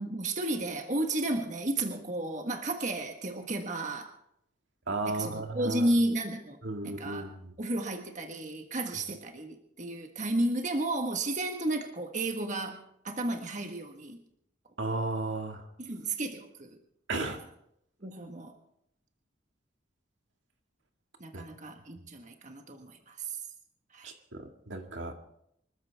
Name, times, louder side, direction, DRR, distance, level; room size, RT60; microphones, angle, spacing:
voice 1, 0.0-4.1 5.0-6.6 6.8-7.3 7.6-14.2 15.8-16.8 18.0-18.5 21.2-23.4 23.9-24.2, right 1 dB, 40° right, 3 dB, 1.5 m, -33 dB
voice 2, 4.9-5.9 6.6-7.5 14.8-15.7 17.1-17.4 21.3-21.4 24.0-25.1, right 2 dB, 80° right, 4 dB, 2.0 m, -34 dB
25.0 x 14.0 x 3.5 m, 0.73 s
head